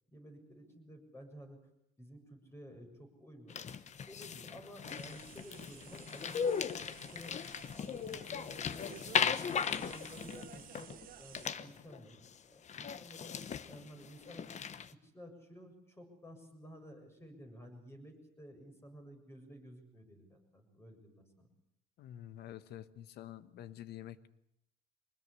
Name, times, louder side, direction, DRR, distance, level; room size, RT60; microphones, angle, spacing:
voice 1, 0.1-1.6 2.0-3.7 4.1-7.4 7.7-12.2 12.4-14.5 14.9-21.5, equal, 15° left, 5 dB, 7.1 m, -53 dB
sound 1, 3.5-11.1 11.3-12.0 12.2-12.3 12.7-14.9, left 7 dB, 45° left, 1.1 m, -38 dB
sound 2, 4.8-11.5, right 10 dB, 60° right, 1.4 m, -55 dB
voice 2, 22.0-24.3, left 11 dB, 70° left, 15 dB, 1.3 m, -48 dB
24.5 x 20.5 x 8.4 m, 0.76 s
cardioid pair, 110°, 17 cm